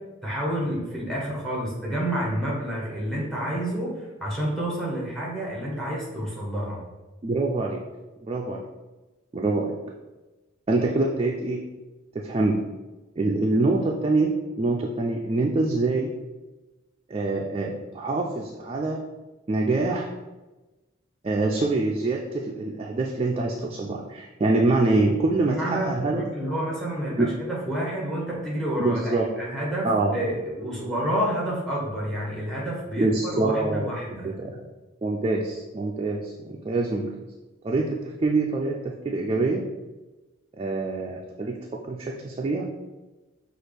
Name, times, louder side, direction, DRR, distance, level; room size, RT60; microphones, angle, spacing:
voice 1, 0.2-6.8 25.4-34.3, right 1 dB, ahead, -5 dB, 1.1 m, -29 dB
voice 2, 7.2-7.8 8.2-8.6 9.3-9.7 10.7-11.6 12.1-12.6 13.2-16.1 17.1-19.0 19.5-20.1 21.2-26.2 27.2-27.3 28.8-29.3 29.8-30.1 33.0-33.9 34.2-34.6 35.0-37.1 37.6-39.6 40.6-41.6 41.9-42.7, right 2 dB, 30° right, -1 dB, 0.3 m, -25 dB
5.9 x 2.4 x 3.3 m, 1.1 s
head